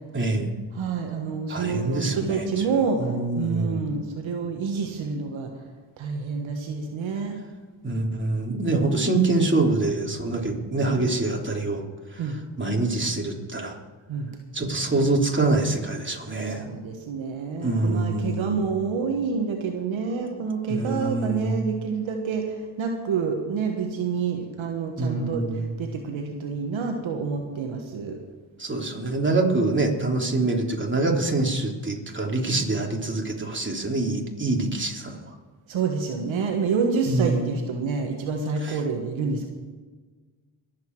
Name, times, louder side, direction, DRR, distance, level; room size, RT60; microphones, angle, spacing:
voice 1, 0.1-0.5 1.5-2.6 3.0-3.8 7.8-11.8 12.1-12.3 12.6-13.8 14.5-16.7 17.6-18.6 20.7-21.6 25.0-25.6 28.6-35.2 37.1-37.4 38.6-38.8, right 2 dB, 25° right, 0 dB, 3.4 m, -25 dB
voice 2, 0.7-5.5 6.0-7.4 12.2-12.4 14.1-14.3 16.4-28.2 35.7-39.5, right 5 dB, 75° right, 3 dB, 1.5 m, -28 dB
22.0 x 8.3 x 4.7 m, 1.4 s
supercardioid pair, 45°, 47 cm